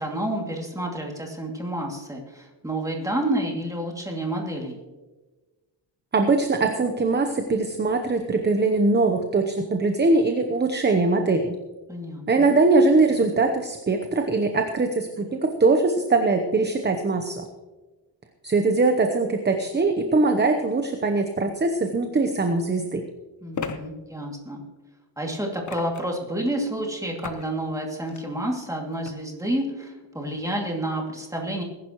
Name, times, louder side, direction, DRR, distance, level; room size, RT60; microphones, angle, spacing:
voice 1, 0.0-4.8 11.9-12.5 23.4-24.6 25.2-31.6, right 1 dB, 5° right, 0 dB, 2.5 m, -29 dB
voice 2, 6.1-11.6 12.3-17.4 18.4-23.0, right 3 dB, 20° right, 6 dB, 0.9 m, -22 dB
sound 1, 22.0-22.1 23.5-23.8 25.6-26.2 27.2-27.5 27.9-28.2 29.0-29.1, left 6 dB, 40° left, 1.1 m, -34 dB
20.5 x 11.0 x 3.1 m, 1.2 s
wide cardioid pair, 145°, 46 cm